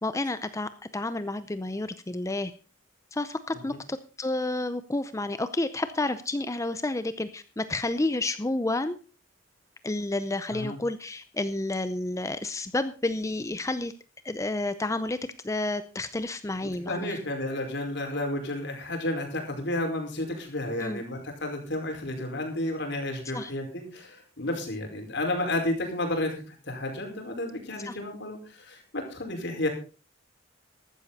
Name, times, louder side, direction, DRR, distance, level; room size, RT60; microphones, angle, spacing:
voice 1, 0.0-2.5 3.1-9.0 9.8-13.9 14.2-15.2 15.4-17.2 20.8-21.0 23.3-23.5 27.9-28.0, left 2 dB, 15° left, 12 dB, 0.6 m, -30 dB
voice 2, 16.6-29.7, left 1 dB, 65° left, 3 dB, 5.0 m, -32 dB
15.0 x 12.0 x 4.1 m, 0.35 s
head